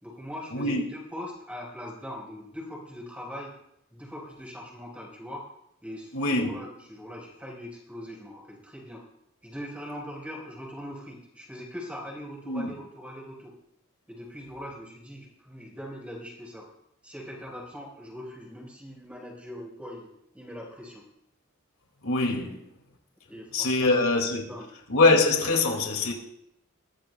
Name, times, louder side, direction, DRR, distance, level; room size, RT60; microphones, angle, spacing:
voice 1, 0.0-3.5 3.9-5.5 5.8-9.0 9.4-13.5 14.1-16.7 17.0-21.0 23.3-23.9 24.3-24.7, equal, 5° right, 4.8 m, -41 dB
voice 2, 6.1-6.5 12.5-12.7 22.0-22.6 23.5-24.4 24.9-26.1, left 3 dB, 80° left, 2.3 m, -23 dB
21.5 x 15.0 x 2.3 m
head